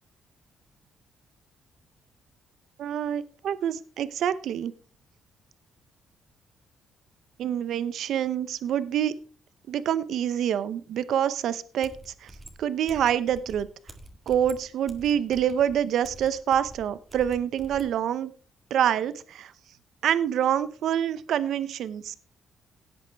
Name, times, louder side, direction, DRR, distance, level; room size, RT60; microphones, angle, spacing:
voice 1, 2.8-4.7 7.4-9.1 9.7-12.3 12.6-13.7 14.3-18.3 18.7-19.5 20.0-22.2, right 9 dB, 70° right, 15 dB, 0.7 m, -26 dB
sound 1, 11.8-17.9, right 1 dB, 15° right, 1.8 m, -47 dB
17.0 x 8.3 x 3.4 m, 0.39 s
cardioid pair, 110°, 0 cm